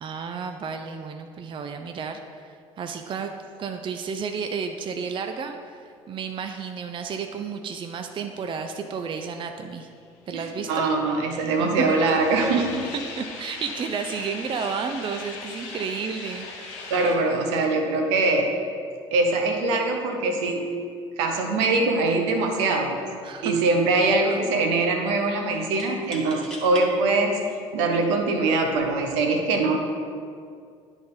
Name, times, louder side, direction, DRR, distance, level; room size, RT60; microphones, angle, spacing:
voice 1, 0.0-3.3 3.6-9.9 10.3-10.8 11.8-11.9 12.6-12.7 12.9-16.9 23.2-23.6, right 6 dB, 35° right, 6 dB, 0.5 m, -32 dB
sound 1, 10.0-17.2, left 4 dB, 65° left, 0.9 m, -40 dB
voice 2, 10.3-12.7 16.9-18.5 19.1-20.6 21.2-23.0 23.4-27.3 27.7-29.9, right 3 dB, 70° right, 3 dB, 0.9 m, -23 dB
sound 2, 22.7-22.8 23.2-23.8 25.7-26.9 27.6-27.7 28.6-28.9, left 1 dB, 5° left, 1.3 m, -42 dB
10.5 x 3.5 x 4.0 m, 2.3 s
figure-of-eight pair, 55°, 15 cm